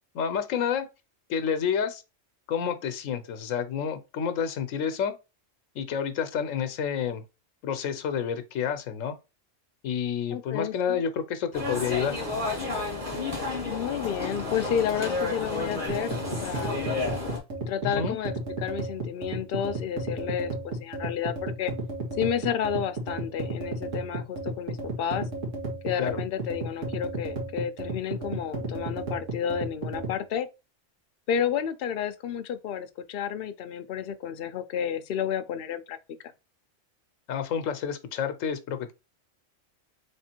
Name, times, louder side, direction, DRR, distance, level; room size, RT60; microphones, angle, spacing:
voice 1, 0.1-0.9 1.3-2.0 2.5-5.1 5.7-7.2 7.6-9.1 9.8-12.2 18.0-18.1 26.0-26.2 37.3-38.9, left 7 dB, 85° left, 1.1 m, -29 dB
voice 2, 10.3-11.0 13.7-16.9 17.7-18.3 18.6-21.7 22.2-25.3 25.8-30.5 31.3-36.0, left 8 dB, 60° left, 0.7 m, -31 dB
sound 1, 11.5-17.4, left 3 dB, 30° right, 1.8 m, -31 dB
sound 2, 15.9-30.2, right 2 dB, 85° right, 1.8 m, -33 dB
3.6 x 3.4 x 4.3 m
omnidirectional pair, 1.3 m